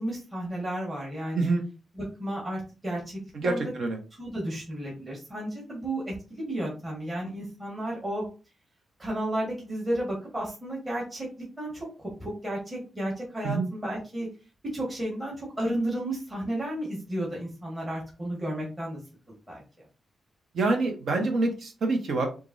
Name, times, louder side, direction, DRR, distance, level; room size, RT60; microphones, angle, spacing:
voice 1, 0.0-1.5 2.0-3.6 4.2-8.3 9.0-11.3 11.6-11.9 12.2-14.3 14.7-19.0 19.5-19.6, right 1 dB, 20° right, -4 dB, 1.7 m, -33 dB
voice 2, 1.3-1.6 3.3-4.0 13.4-13.7 20.5-22.3, right 3 dB, 65° right, 3 dB, 1.3 m, -26 dB
6.5 x 2.6 x 2.7 m, 0.33 s
wide cardioid pair, 140°, 0 cm